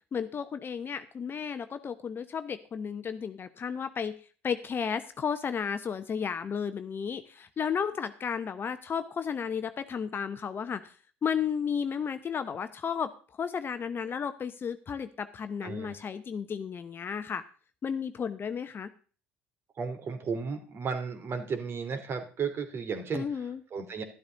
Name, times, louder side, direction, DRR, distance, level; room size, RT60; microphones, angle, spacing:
voice 1, 0.1-4.1 4.4-10.9 11.2-13.1 13.4-17.4 17.8-18.9 23.1-23.6, left 7 dB, 35° left, 11 dB, 1.0 m, -33 dB
voice 2, 15.6-15.9 19.8-23.2 23.7-24.0, right 5 dB, 40° right, 7 dB, 2.8 m, -34 dB
12.5 x 12.0 x 3.9 m, 0.39 s
figure-of-eight pair, 60°, 6 cm